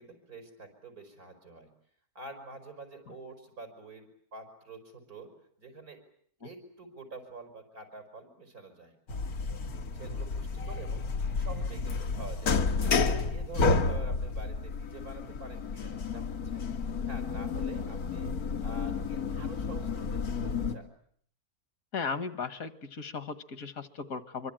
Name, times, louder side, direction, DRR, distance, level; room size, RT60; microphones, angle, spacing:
voice 1, 0.0-1.7 2.2-5.3 5.6-6.0 6.4-9.0 9.9-11.0 11.3-16.7 17.1-18.3 18.6-20.9, right 3 dB, 90° right, 5 dB, 5.5 m, -47 dB
sound 1, 9.1-20.8, left 4 dB, 90° left, 1.9 m, -31 dB
voice 2, 21.9-24.5, left 5 dB, 70° left, 13 dB, 1.8 m, -36 dB
25.0 x 24.0 x 8.9 m, 0.62 s
omnidirectional pair, 1.5 m